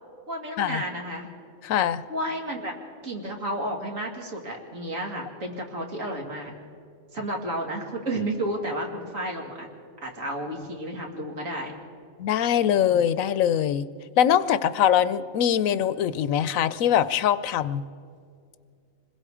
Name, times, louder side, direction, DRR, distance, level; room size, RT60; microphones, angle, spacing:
voice 1, 0.3-1.3 2.1-2.7 3.0-6.5 7.1-9.7 10.0-11.7 12.7-12.8, right 1 dB, 85° right, 1 dB, 2.8 m, -32 dB
voice 2, 1.6-2.0 12.2-13.9 14.2-17.8, left 9 dB, 90° left, 15 dB, 1.1 m, -22 dB
25.5 x 21.0 x 4.9 m, 2.3 s
omnidirectional pair, 1.4 m